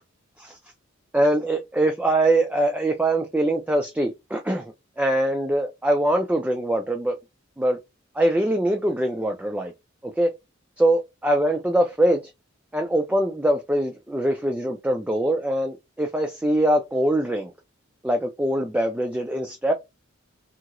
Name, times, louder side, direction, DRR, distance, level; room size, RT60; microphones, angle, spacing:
voice 1, 1.1-7.2 7.6-7.8 8.2-9.7 10.0-10.3 10.8-12.3 12.7-17.5 18.0-19.7, right 1 dB, 5° right, 0.3 m, -23 dB
2.9 x 2.8 x 2.4 m
head